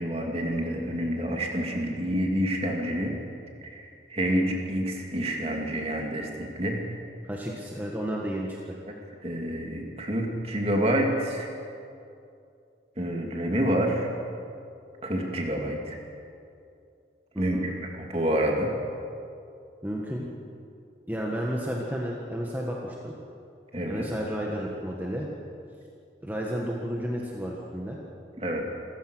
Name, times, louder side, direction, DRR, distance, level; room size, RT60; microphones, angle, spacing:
voice 1, 0.0-3.1 3.6-6.8 9.2-11.5 13.0-14.1 15.0-16.0 17.4-18.7 23.7-24.0 28.4-28.6, equal, 35° right, 1 dB, 2.6 m, -28 dB
voice 2, 7.2-8.8 17.3-17.7 19.8-20.3 21.1-23.1 23.8-25.3 26.2-28.0, equal, 10° right, -3 dB, 1.6 m, -32 dB
27.5 x 15.0 x 6.4 m, 2.5 s
head